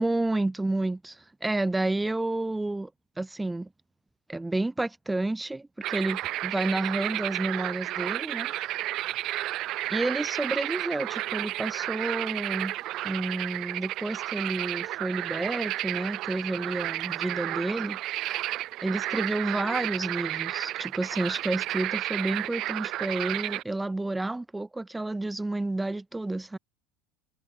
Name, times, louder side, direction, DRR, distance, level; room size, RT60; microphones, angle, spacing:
voice 1, 0.0-2.9 3.2-3.7 4.3-8.5 9.9-12.7 13.0-18.0 18.3-18.4 18.8-26.6, right 2 dB, 10° right, 2.3 m, -30 dB
sound 1, 5.8-23.6, right 16 dB, 45° right, 1.6 m, -32 dB
figure-of-eight pair, 70°, 0 cm